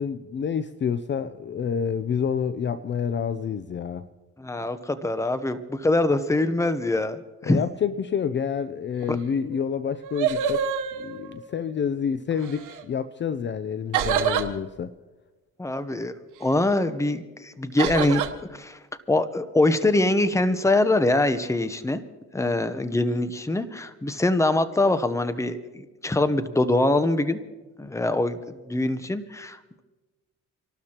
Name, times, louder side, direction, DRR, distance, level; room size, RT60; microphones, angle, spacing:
voice 1, 0.0-4.1 7.4-10.7 10.9-14.9, left 7 dB, 40° left, 0.5 m, -28 dB
voice 2, 4.4-7.6 9.1-9.2 15.6-16.1 16.4-18.2 18.5-18.8 19.1-22.0 22.3-27.4 27.8-29.8, left 2 dB, 10° left, 0.8 m, -24 dB
sound 1, 9.5-9.6 9.9-11.7 12.4-12.8 13.9-14.5 17.8-18.3, right 7 dB, 85° right, 1.1 m, -26 dB
28.5 x 12.5 x 3.0 m
cardioid pair, 90°, 30 cm